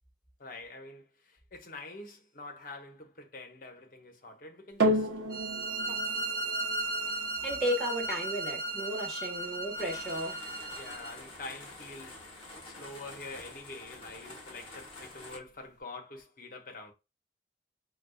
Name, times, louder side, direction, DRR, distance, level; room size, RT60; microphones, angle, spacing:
voice 1, 0.4-5.1 5.9-6.2 10.7-12.2 12.6-16.9, left 2 dB, 50° left, 0.8 m, -46 dB
sound 1, 4.8-13.4 14.1-14.2, right 1 dB, 70° right, 0.8 m, -36 dB
sound 2, 5.3-11.1, right 2 dB, 25° right, 0.7 m, -35 dB
voice 2, 7.4-10.4, equal, ahead, 1.3 m, -34 dB
sound 3, 9.8-15.4, left 2 dB, 30° left, 1.1 m, -48 dB
5.0 x 2.3 x 2.3 m
head